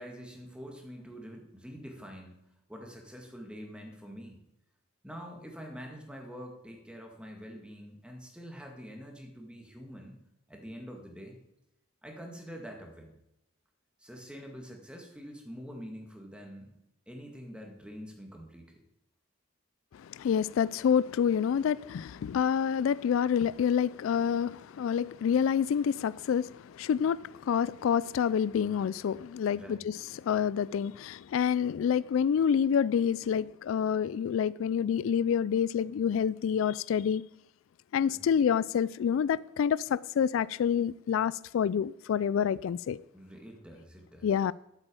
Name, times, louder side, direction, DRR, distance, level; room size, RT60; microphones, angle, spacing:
voice 1, 0.0-2.4 2.7-4.4 5.0-10.2 10.5-11.4 12.0-13.1 14.0-16.7 17.1-18.8 29.5-29.9 38.1-38.2 43.1-44.3, equal, 5° right, 2.0 m, -45 dB
voice 2, 19.9-37.2 37.9-43.0 44.2-44.5, left 7 dB, 80° left, 0.3 m, -28 dB
9.0 x 8.1 x 8.5 m
head